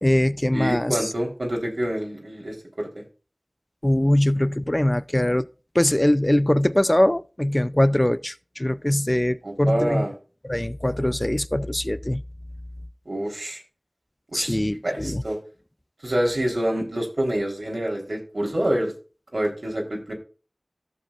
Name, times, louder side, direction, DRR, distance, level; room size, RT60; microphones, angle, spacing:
voice 1, 0.0-1.1 3.8-5.5 5.7-10.1 10.4-12.2 14.3-15.2, left 1 dB, 25° left, 0.5 m, -22 dB
voice 2, 0.5-3.0 9.4-10.1 13.1-13.6 14.3-14.6 14.8-15.4 16.0-18.9 19.3-20.1, right 1 dB, 75° right, 3.7 m, -26 dB
14.5 x 7.2 x 2.4 m
wide cardioid pair, 45°, 0 cm